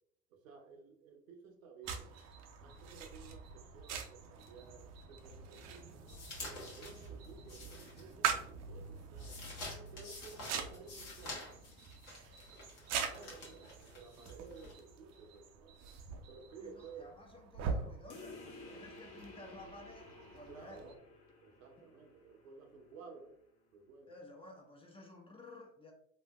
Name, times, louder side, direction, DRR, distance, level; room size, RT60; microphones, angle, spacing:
voice 1, 0.3-2.1 2.6-9.4 9.7-11.5 12.1-12.4 13.0-15.8 16.3-17.2 20.5-21.0 21.4-23.4 23.7-24.2, right 5 dB, 75° right, 3 dB, 0.8 m, -55 dB
sound 1, 1.8-21.0, right 6 dB, 40° right, 0.6 m, -44 dB
sound 2, 6.1-8.5 8.8-14.7, left 2 dB, 80° left, 1.3 m, -49 dB
voice 2, 16.6-20.9 24.1-25.9, left 2 dB, 15° left, 1 dB, 0.6 m, -54 dB
sound 3, 18.1-23.1, left 3 dB, 35° left, 0.9 m, -54 dB
4.1 x 2.6 x 2.3 m, 0.68 s
hypercardioid pair, 75°, 41 cm